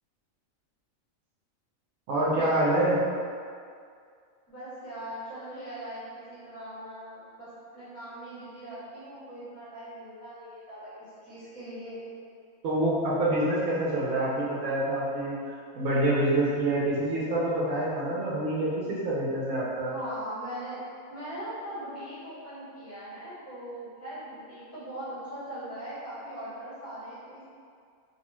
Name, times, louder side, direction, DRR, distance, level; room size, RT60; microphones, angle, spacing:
voice 1, 2.1-3.0 12.6-19.9, right 1 dB, 75° right, -7 dB, 1.0 m, -26 dB
voice 2, 4.5-12.0 19.9-20.8 21.1-27.4, right 1 dB, 10° left, -13 dB, 1.2 m, -40 dB
2.6 x 2.3 x 2.9 m, 2.2 s
omnidirectional pair, 1.4 m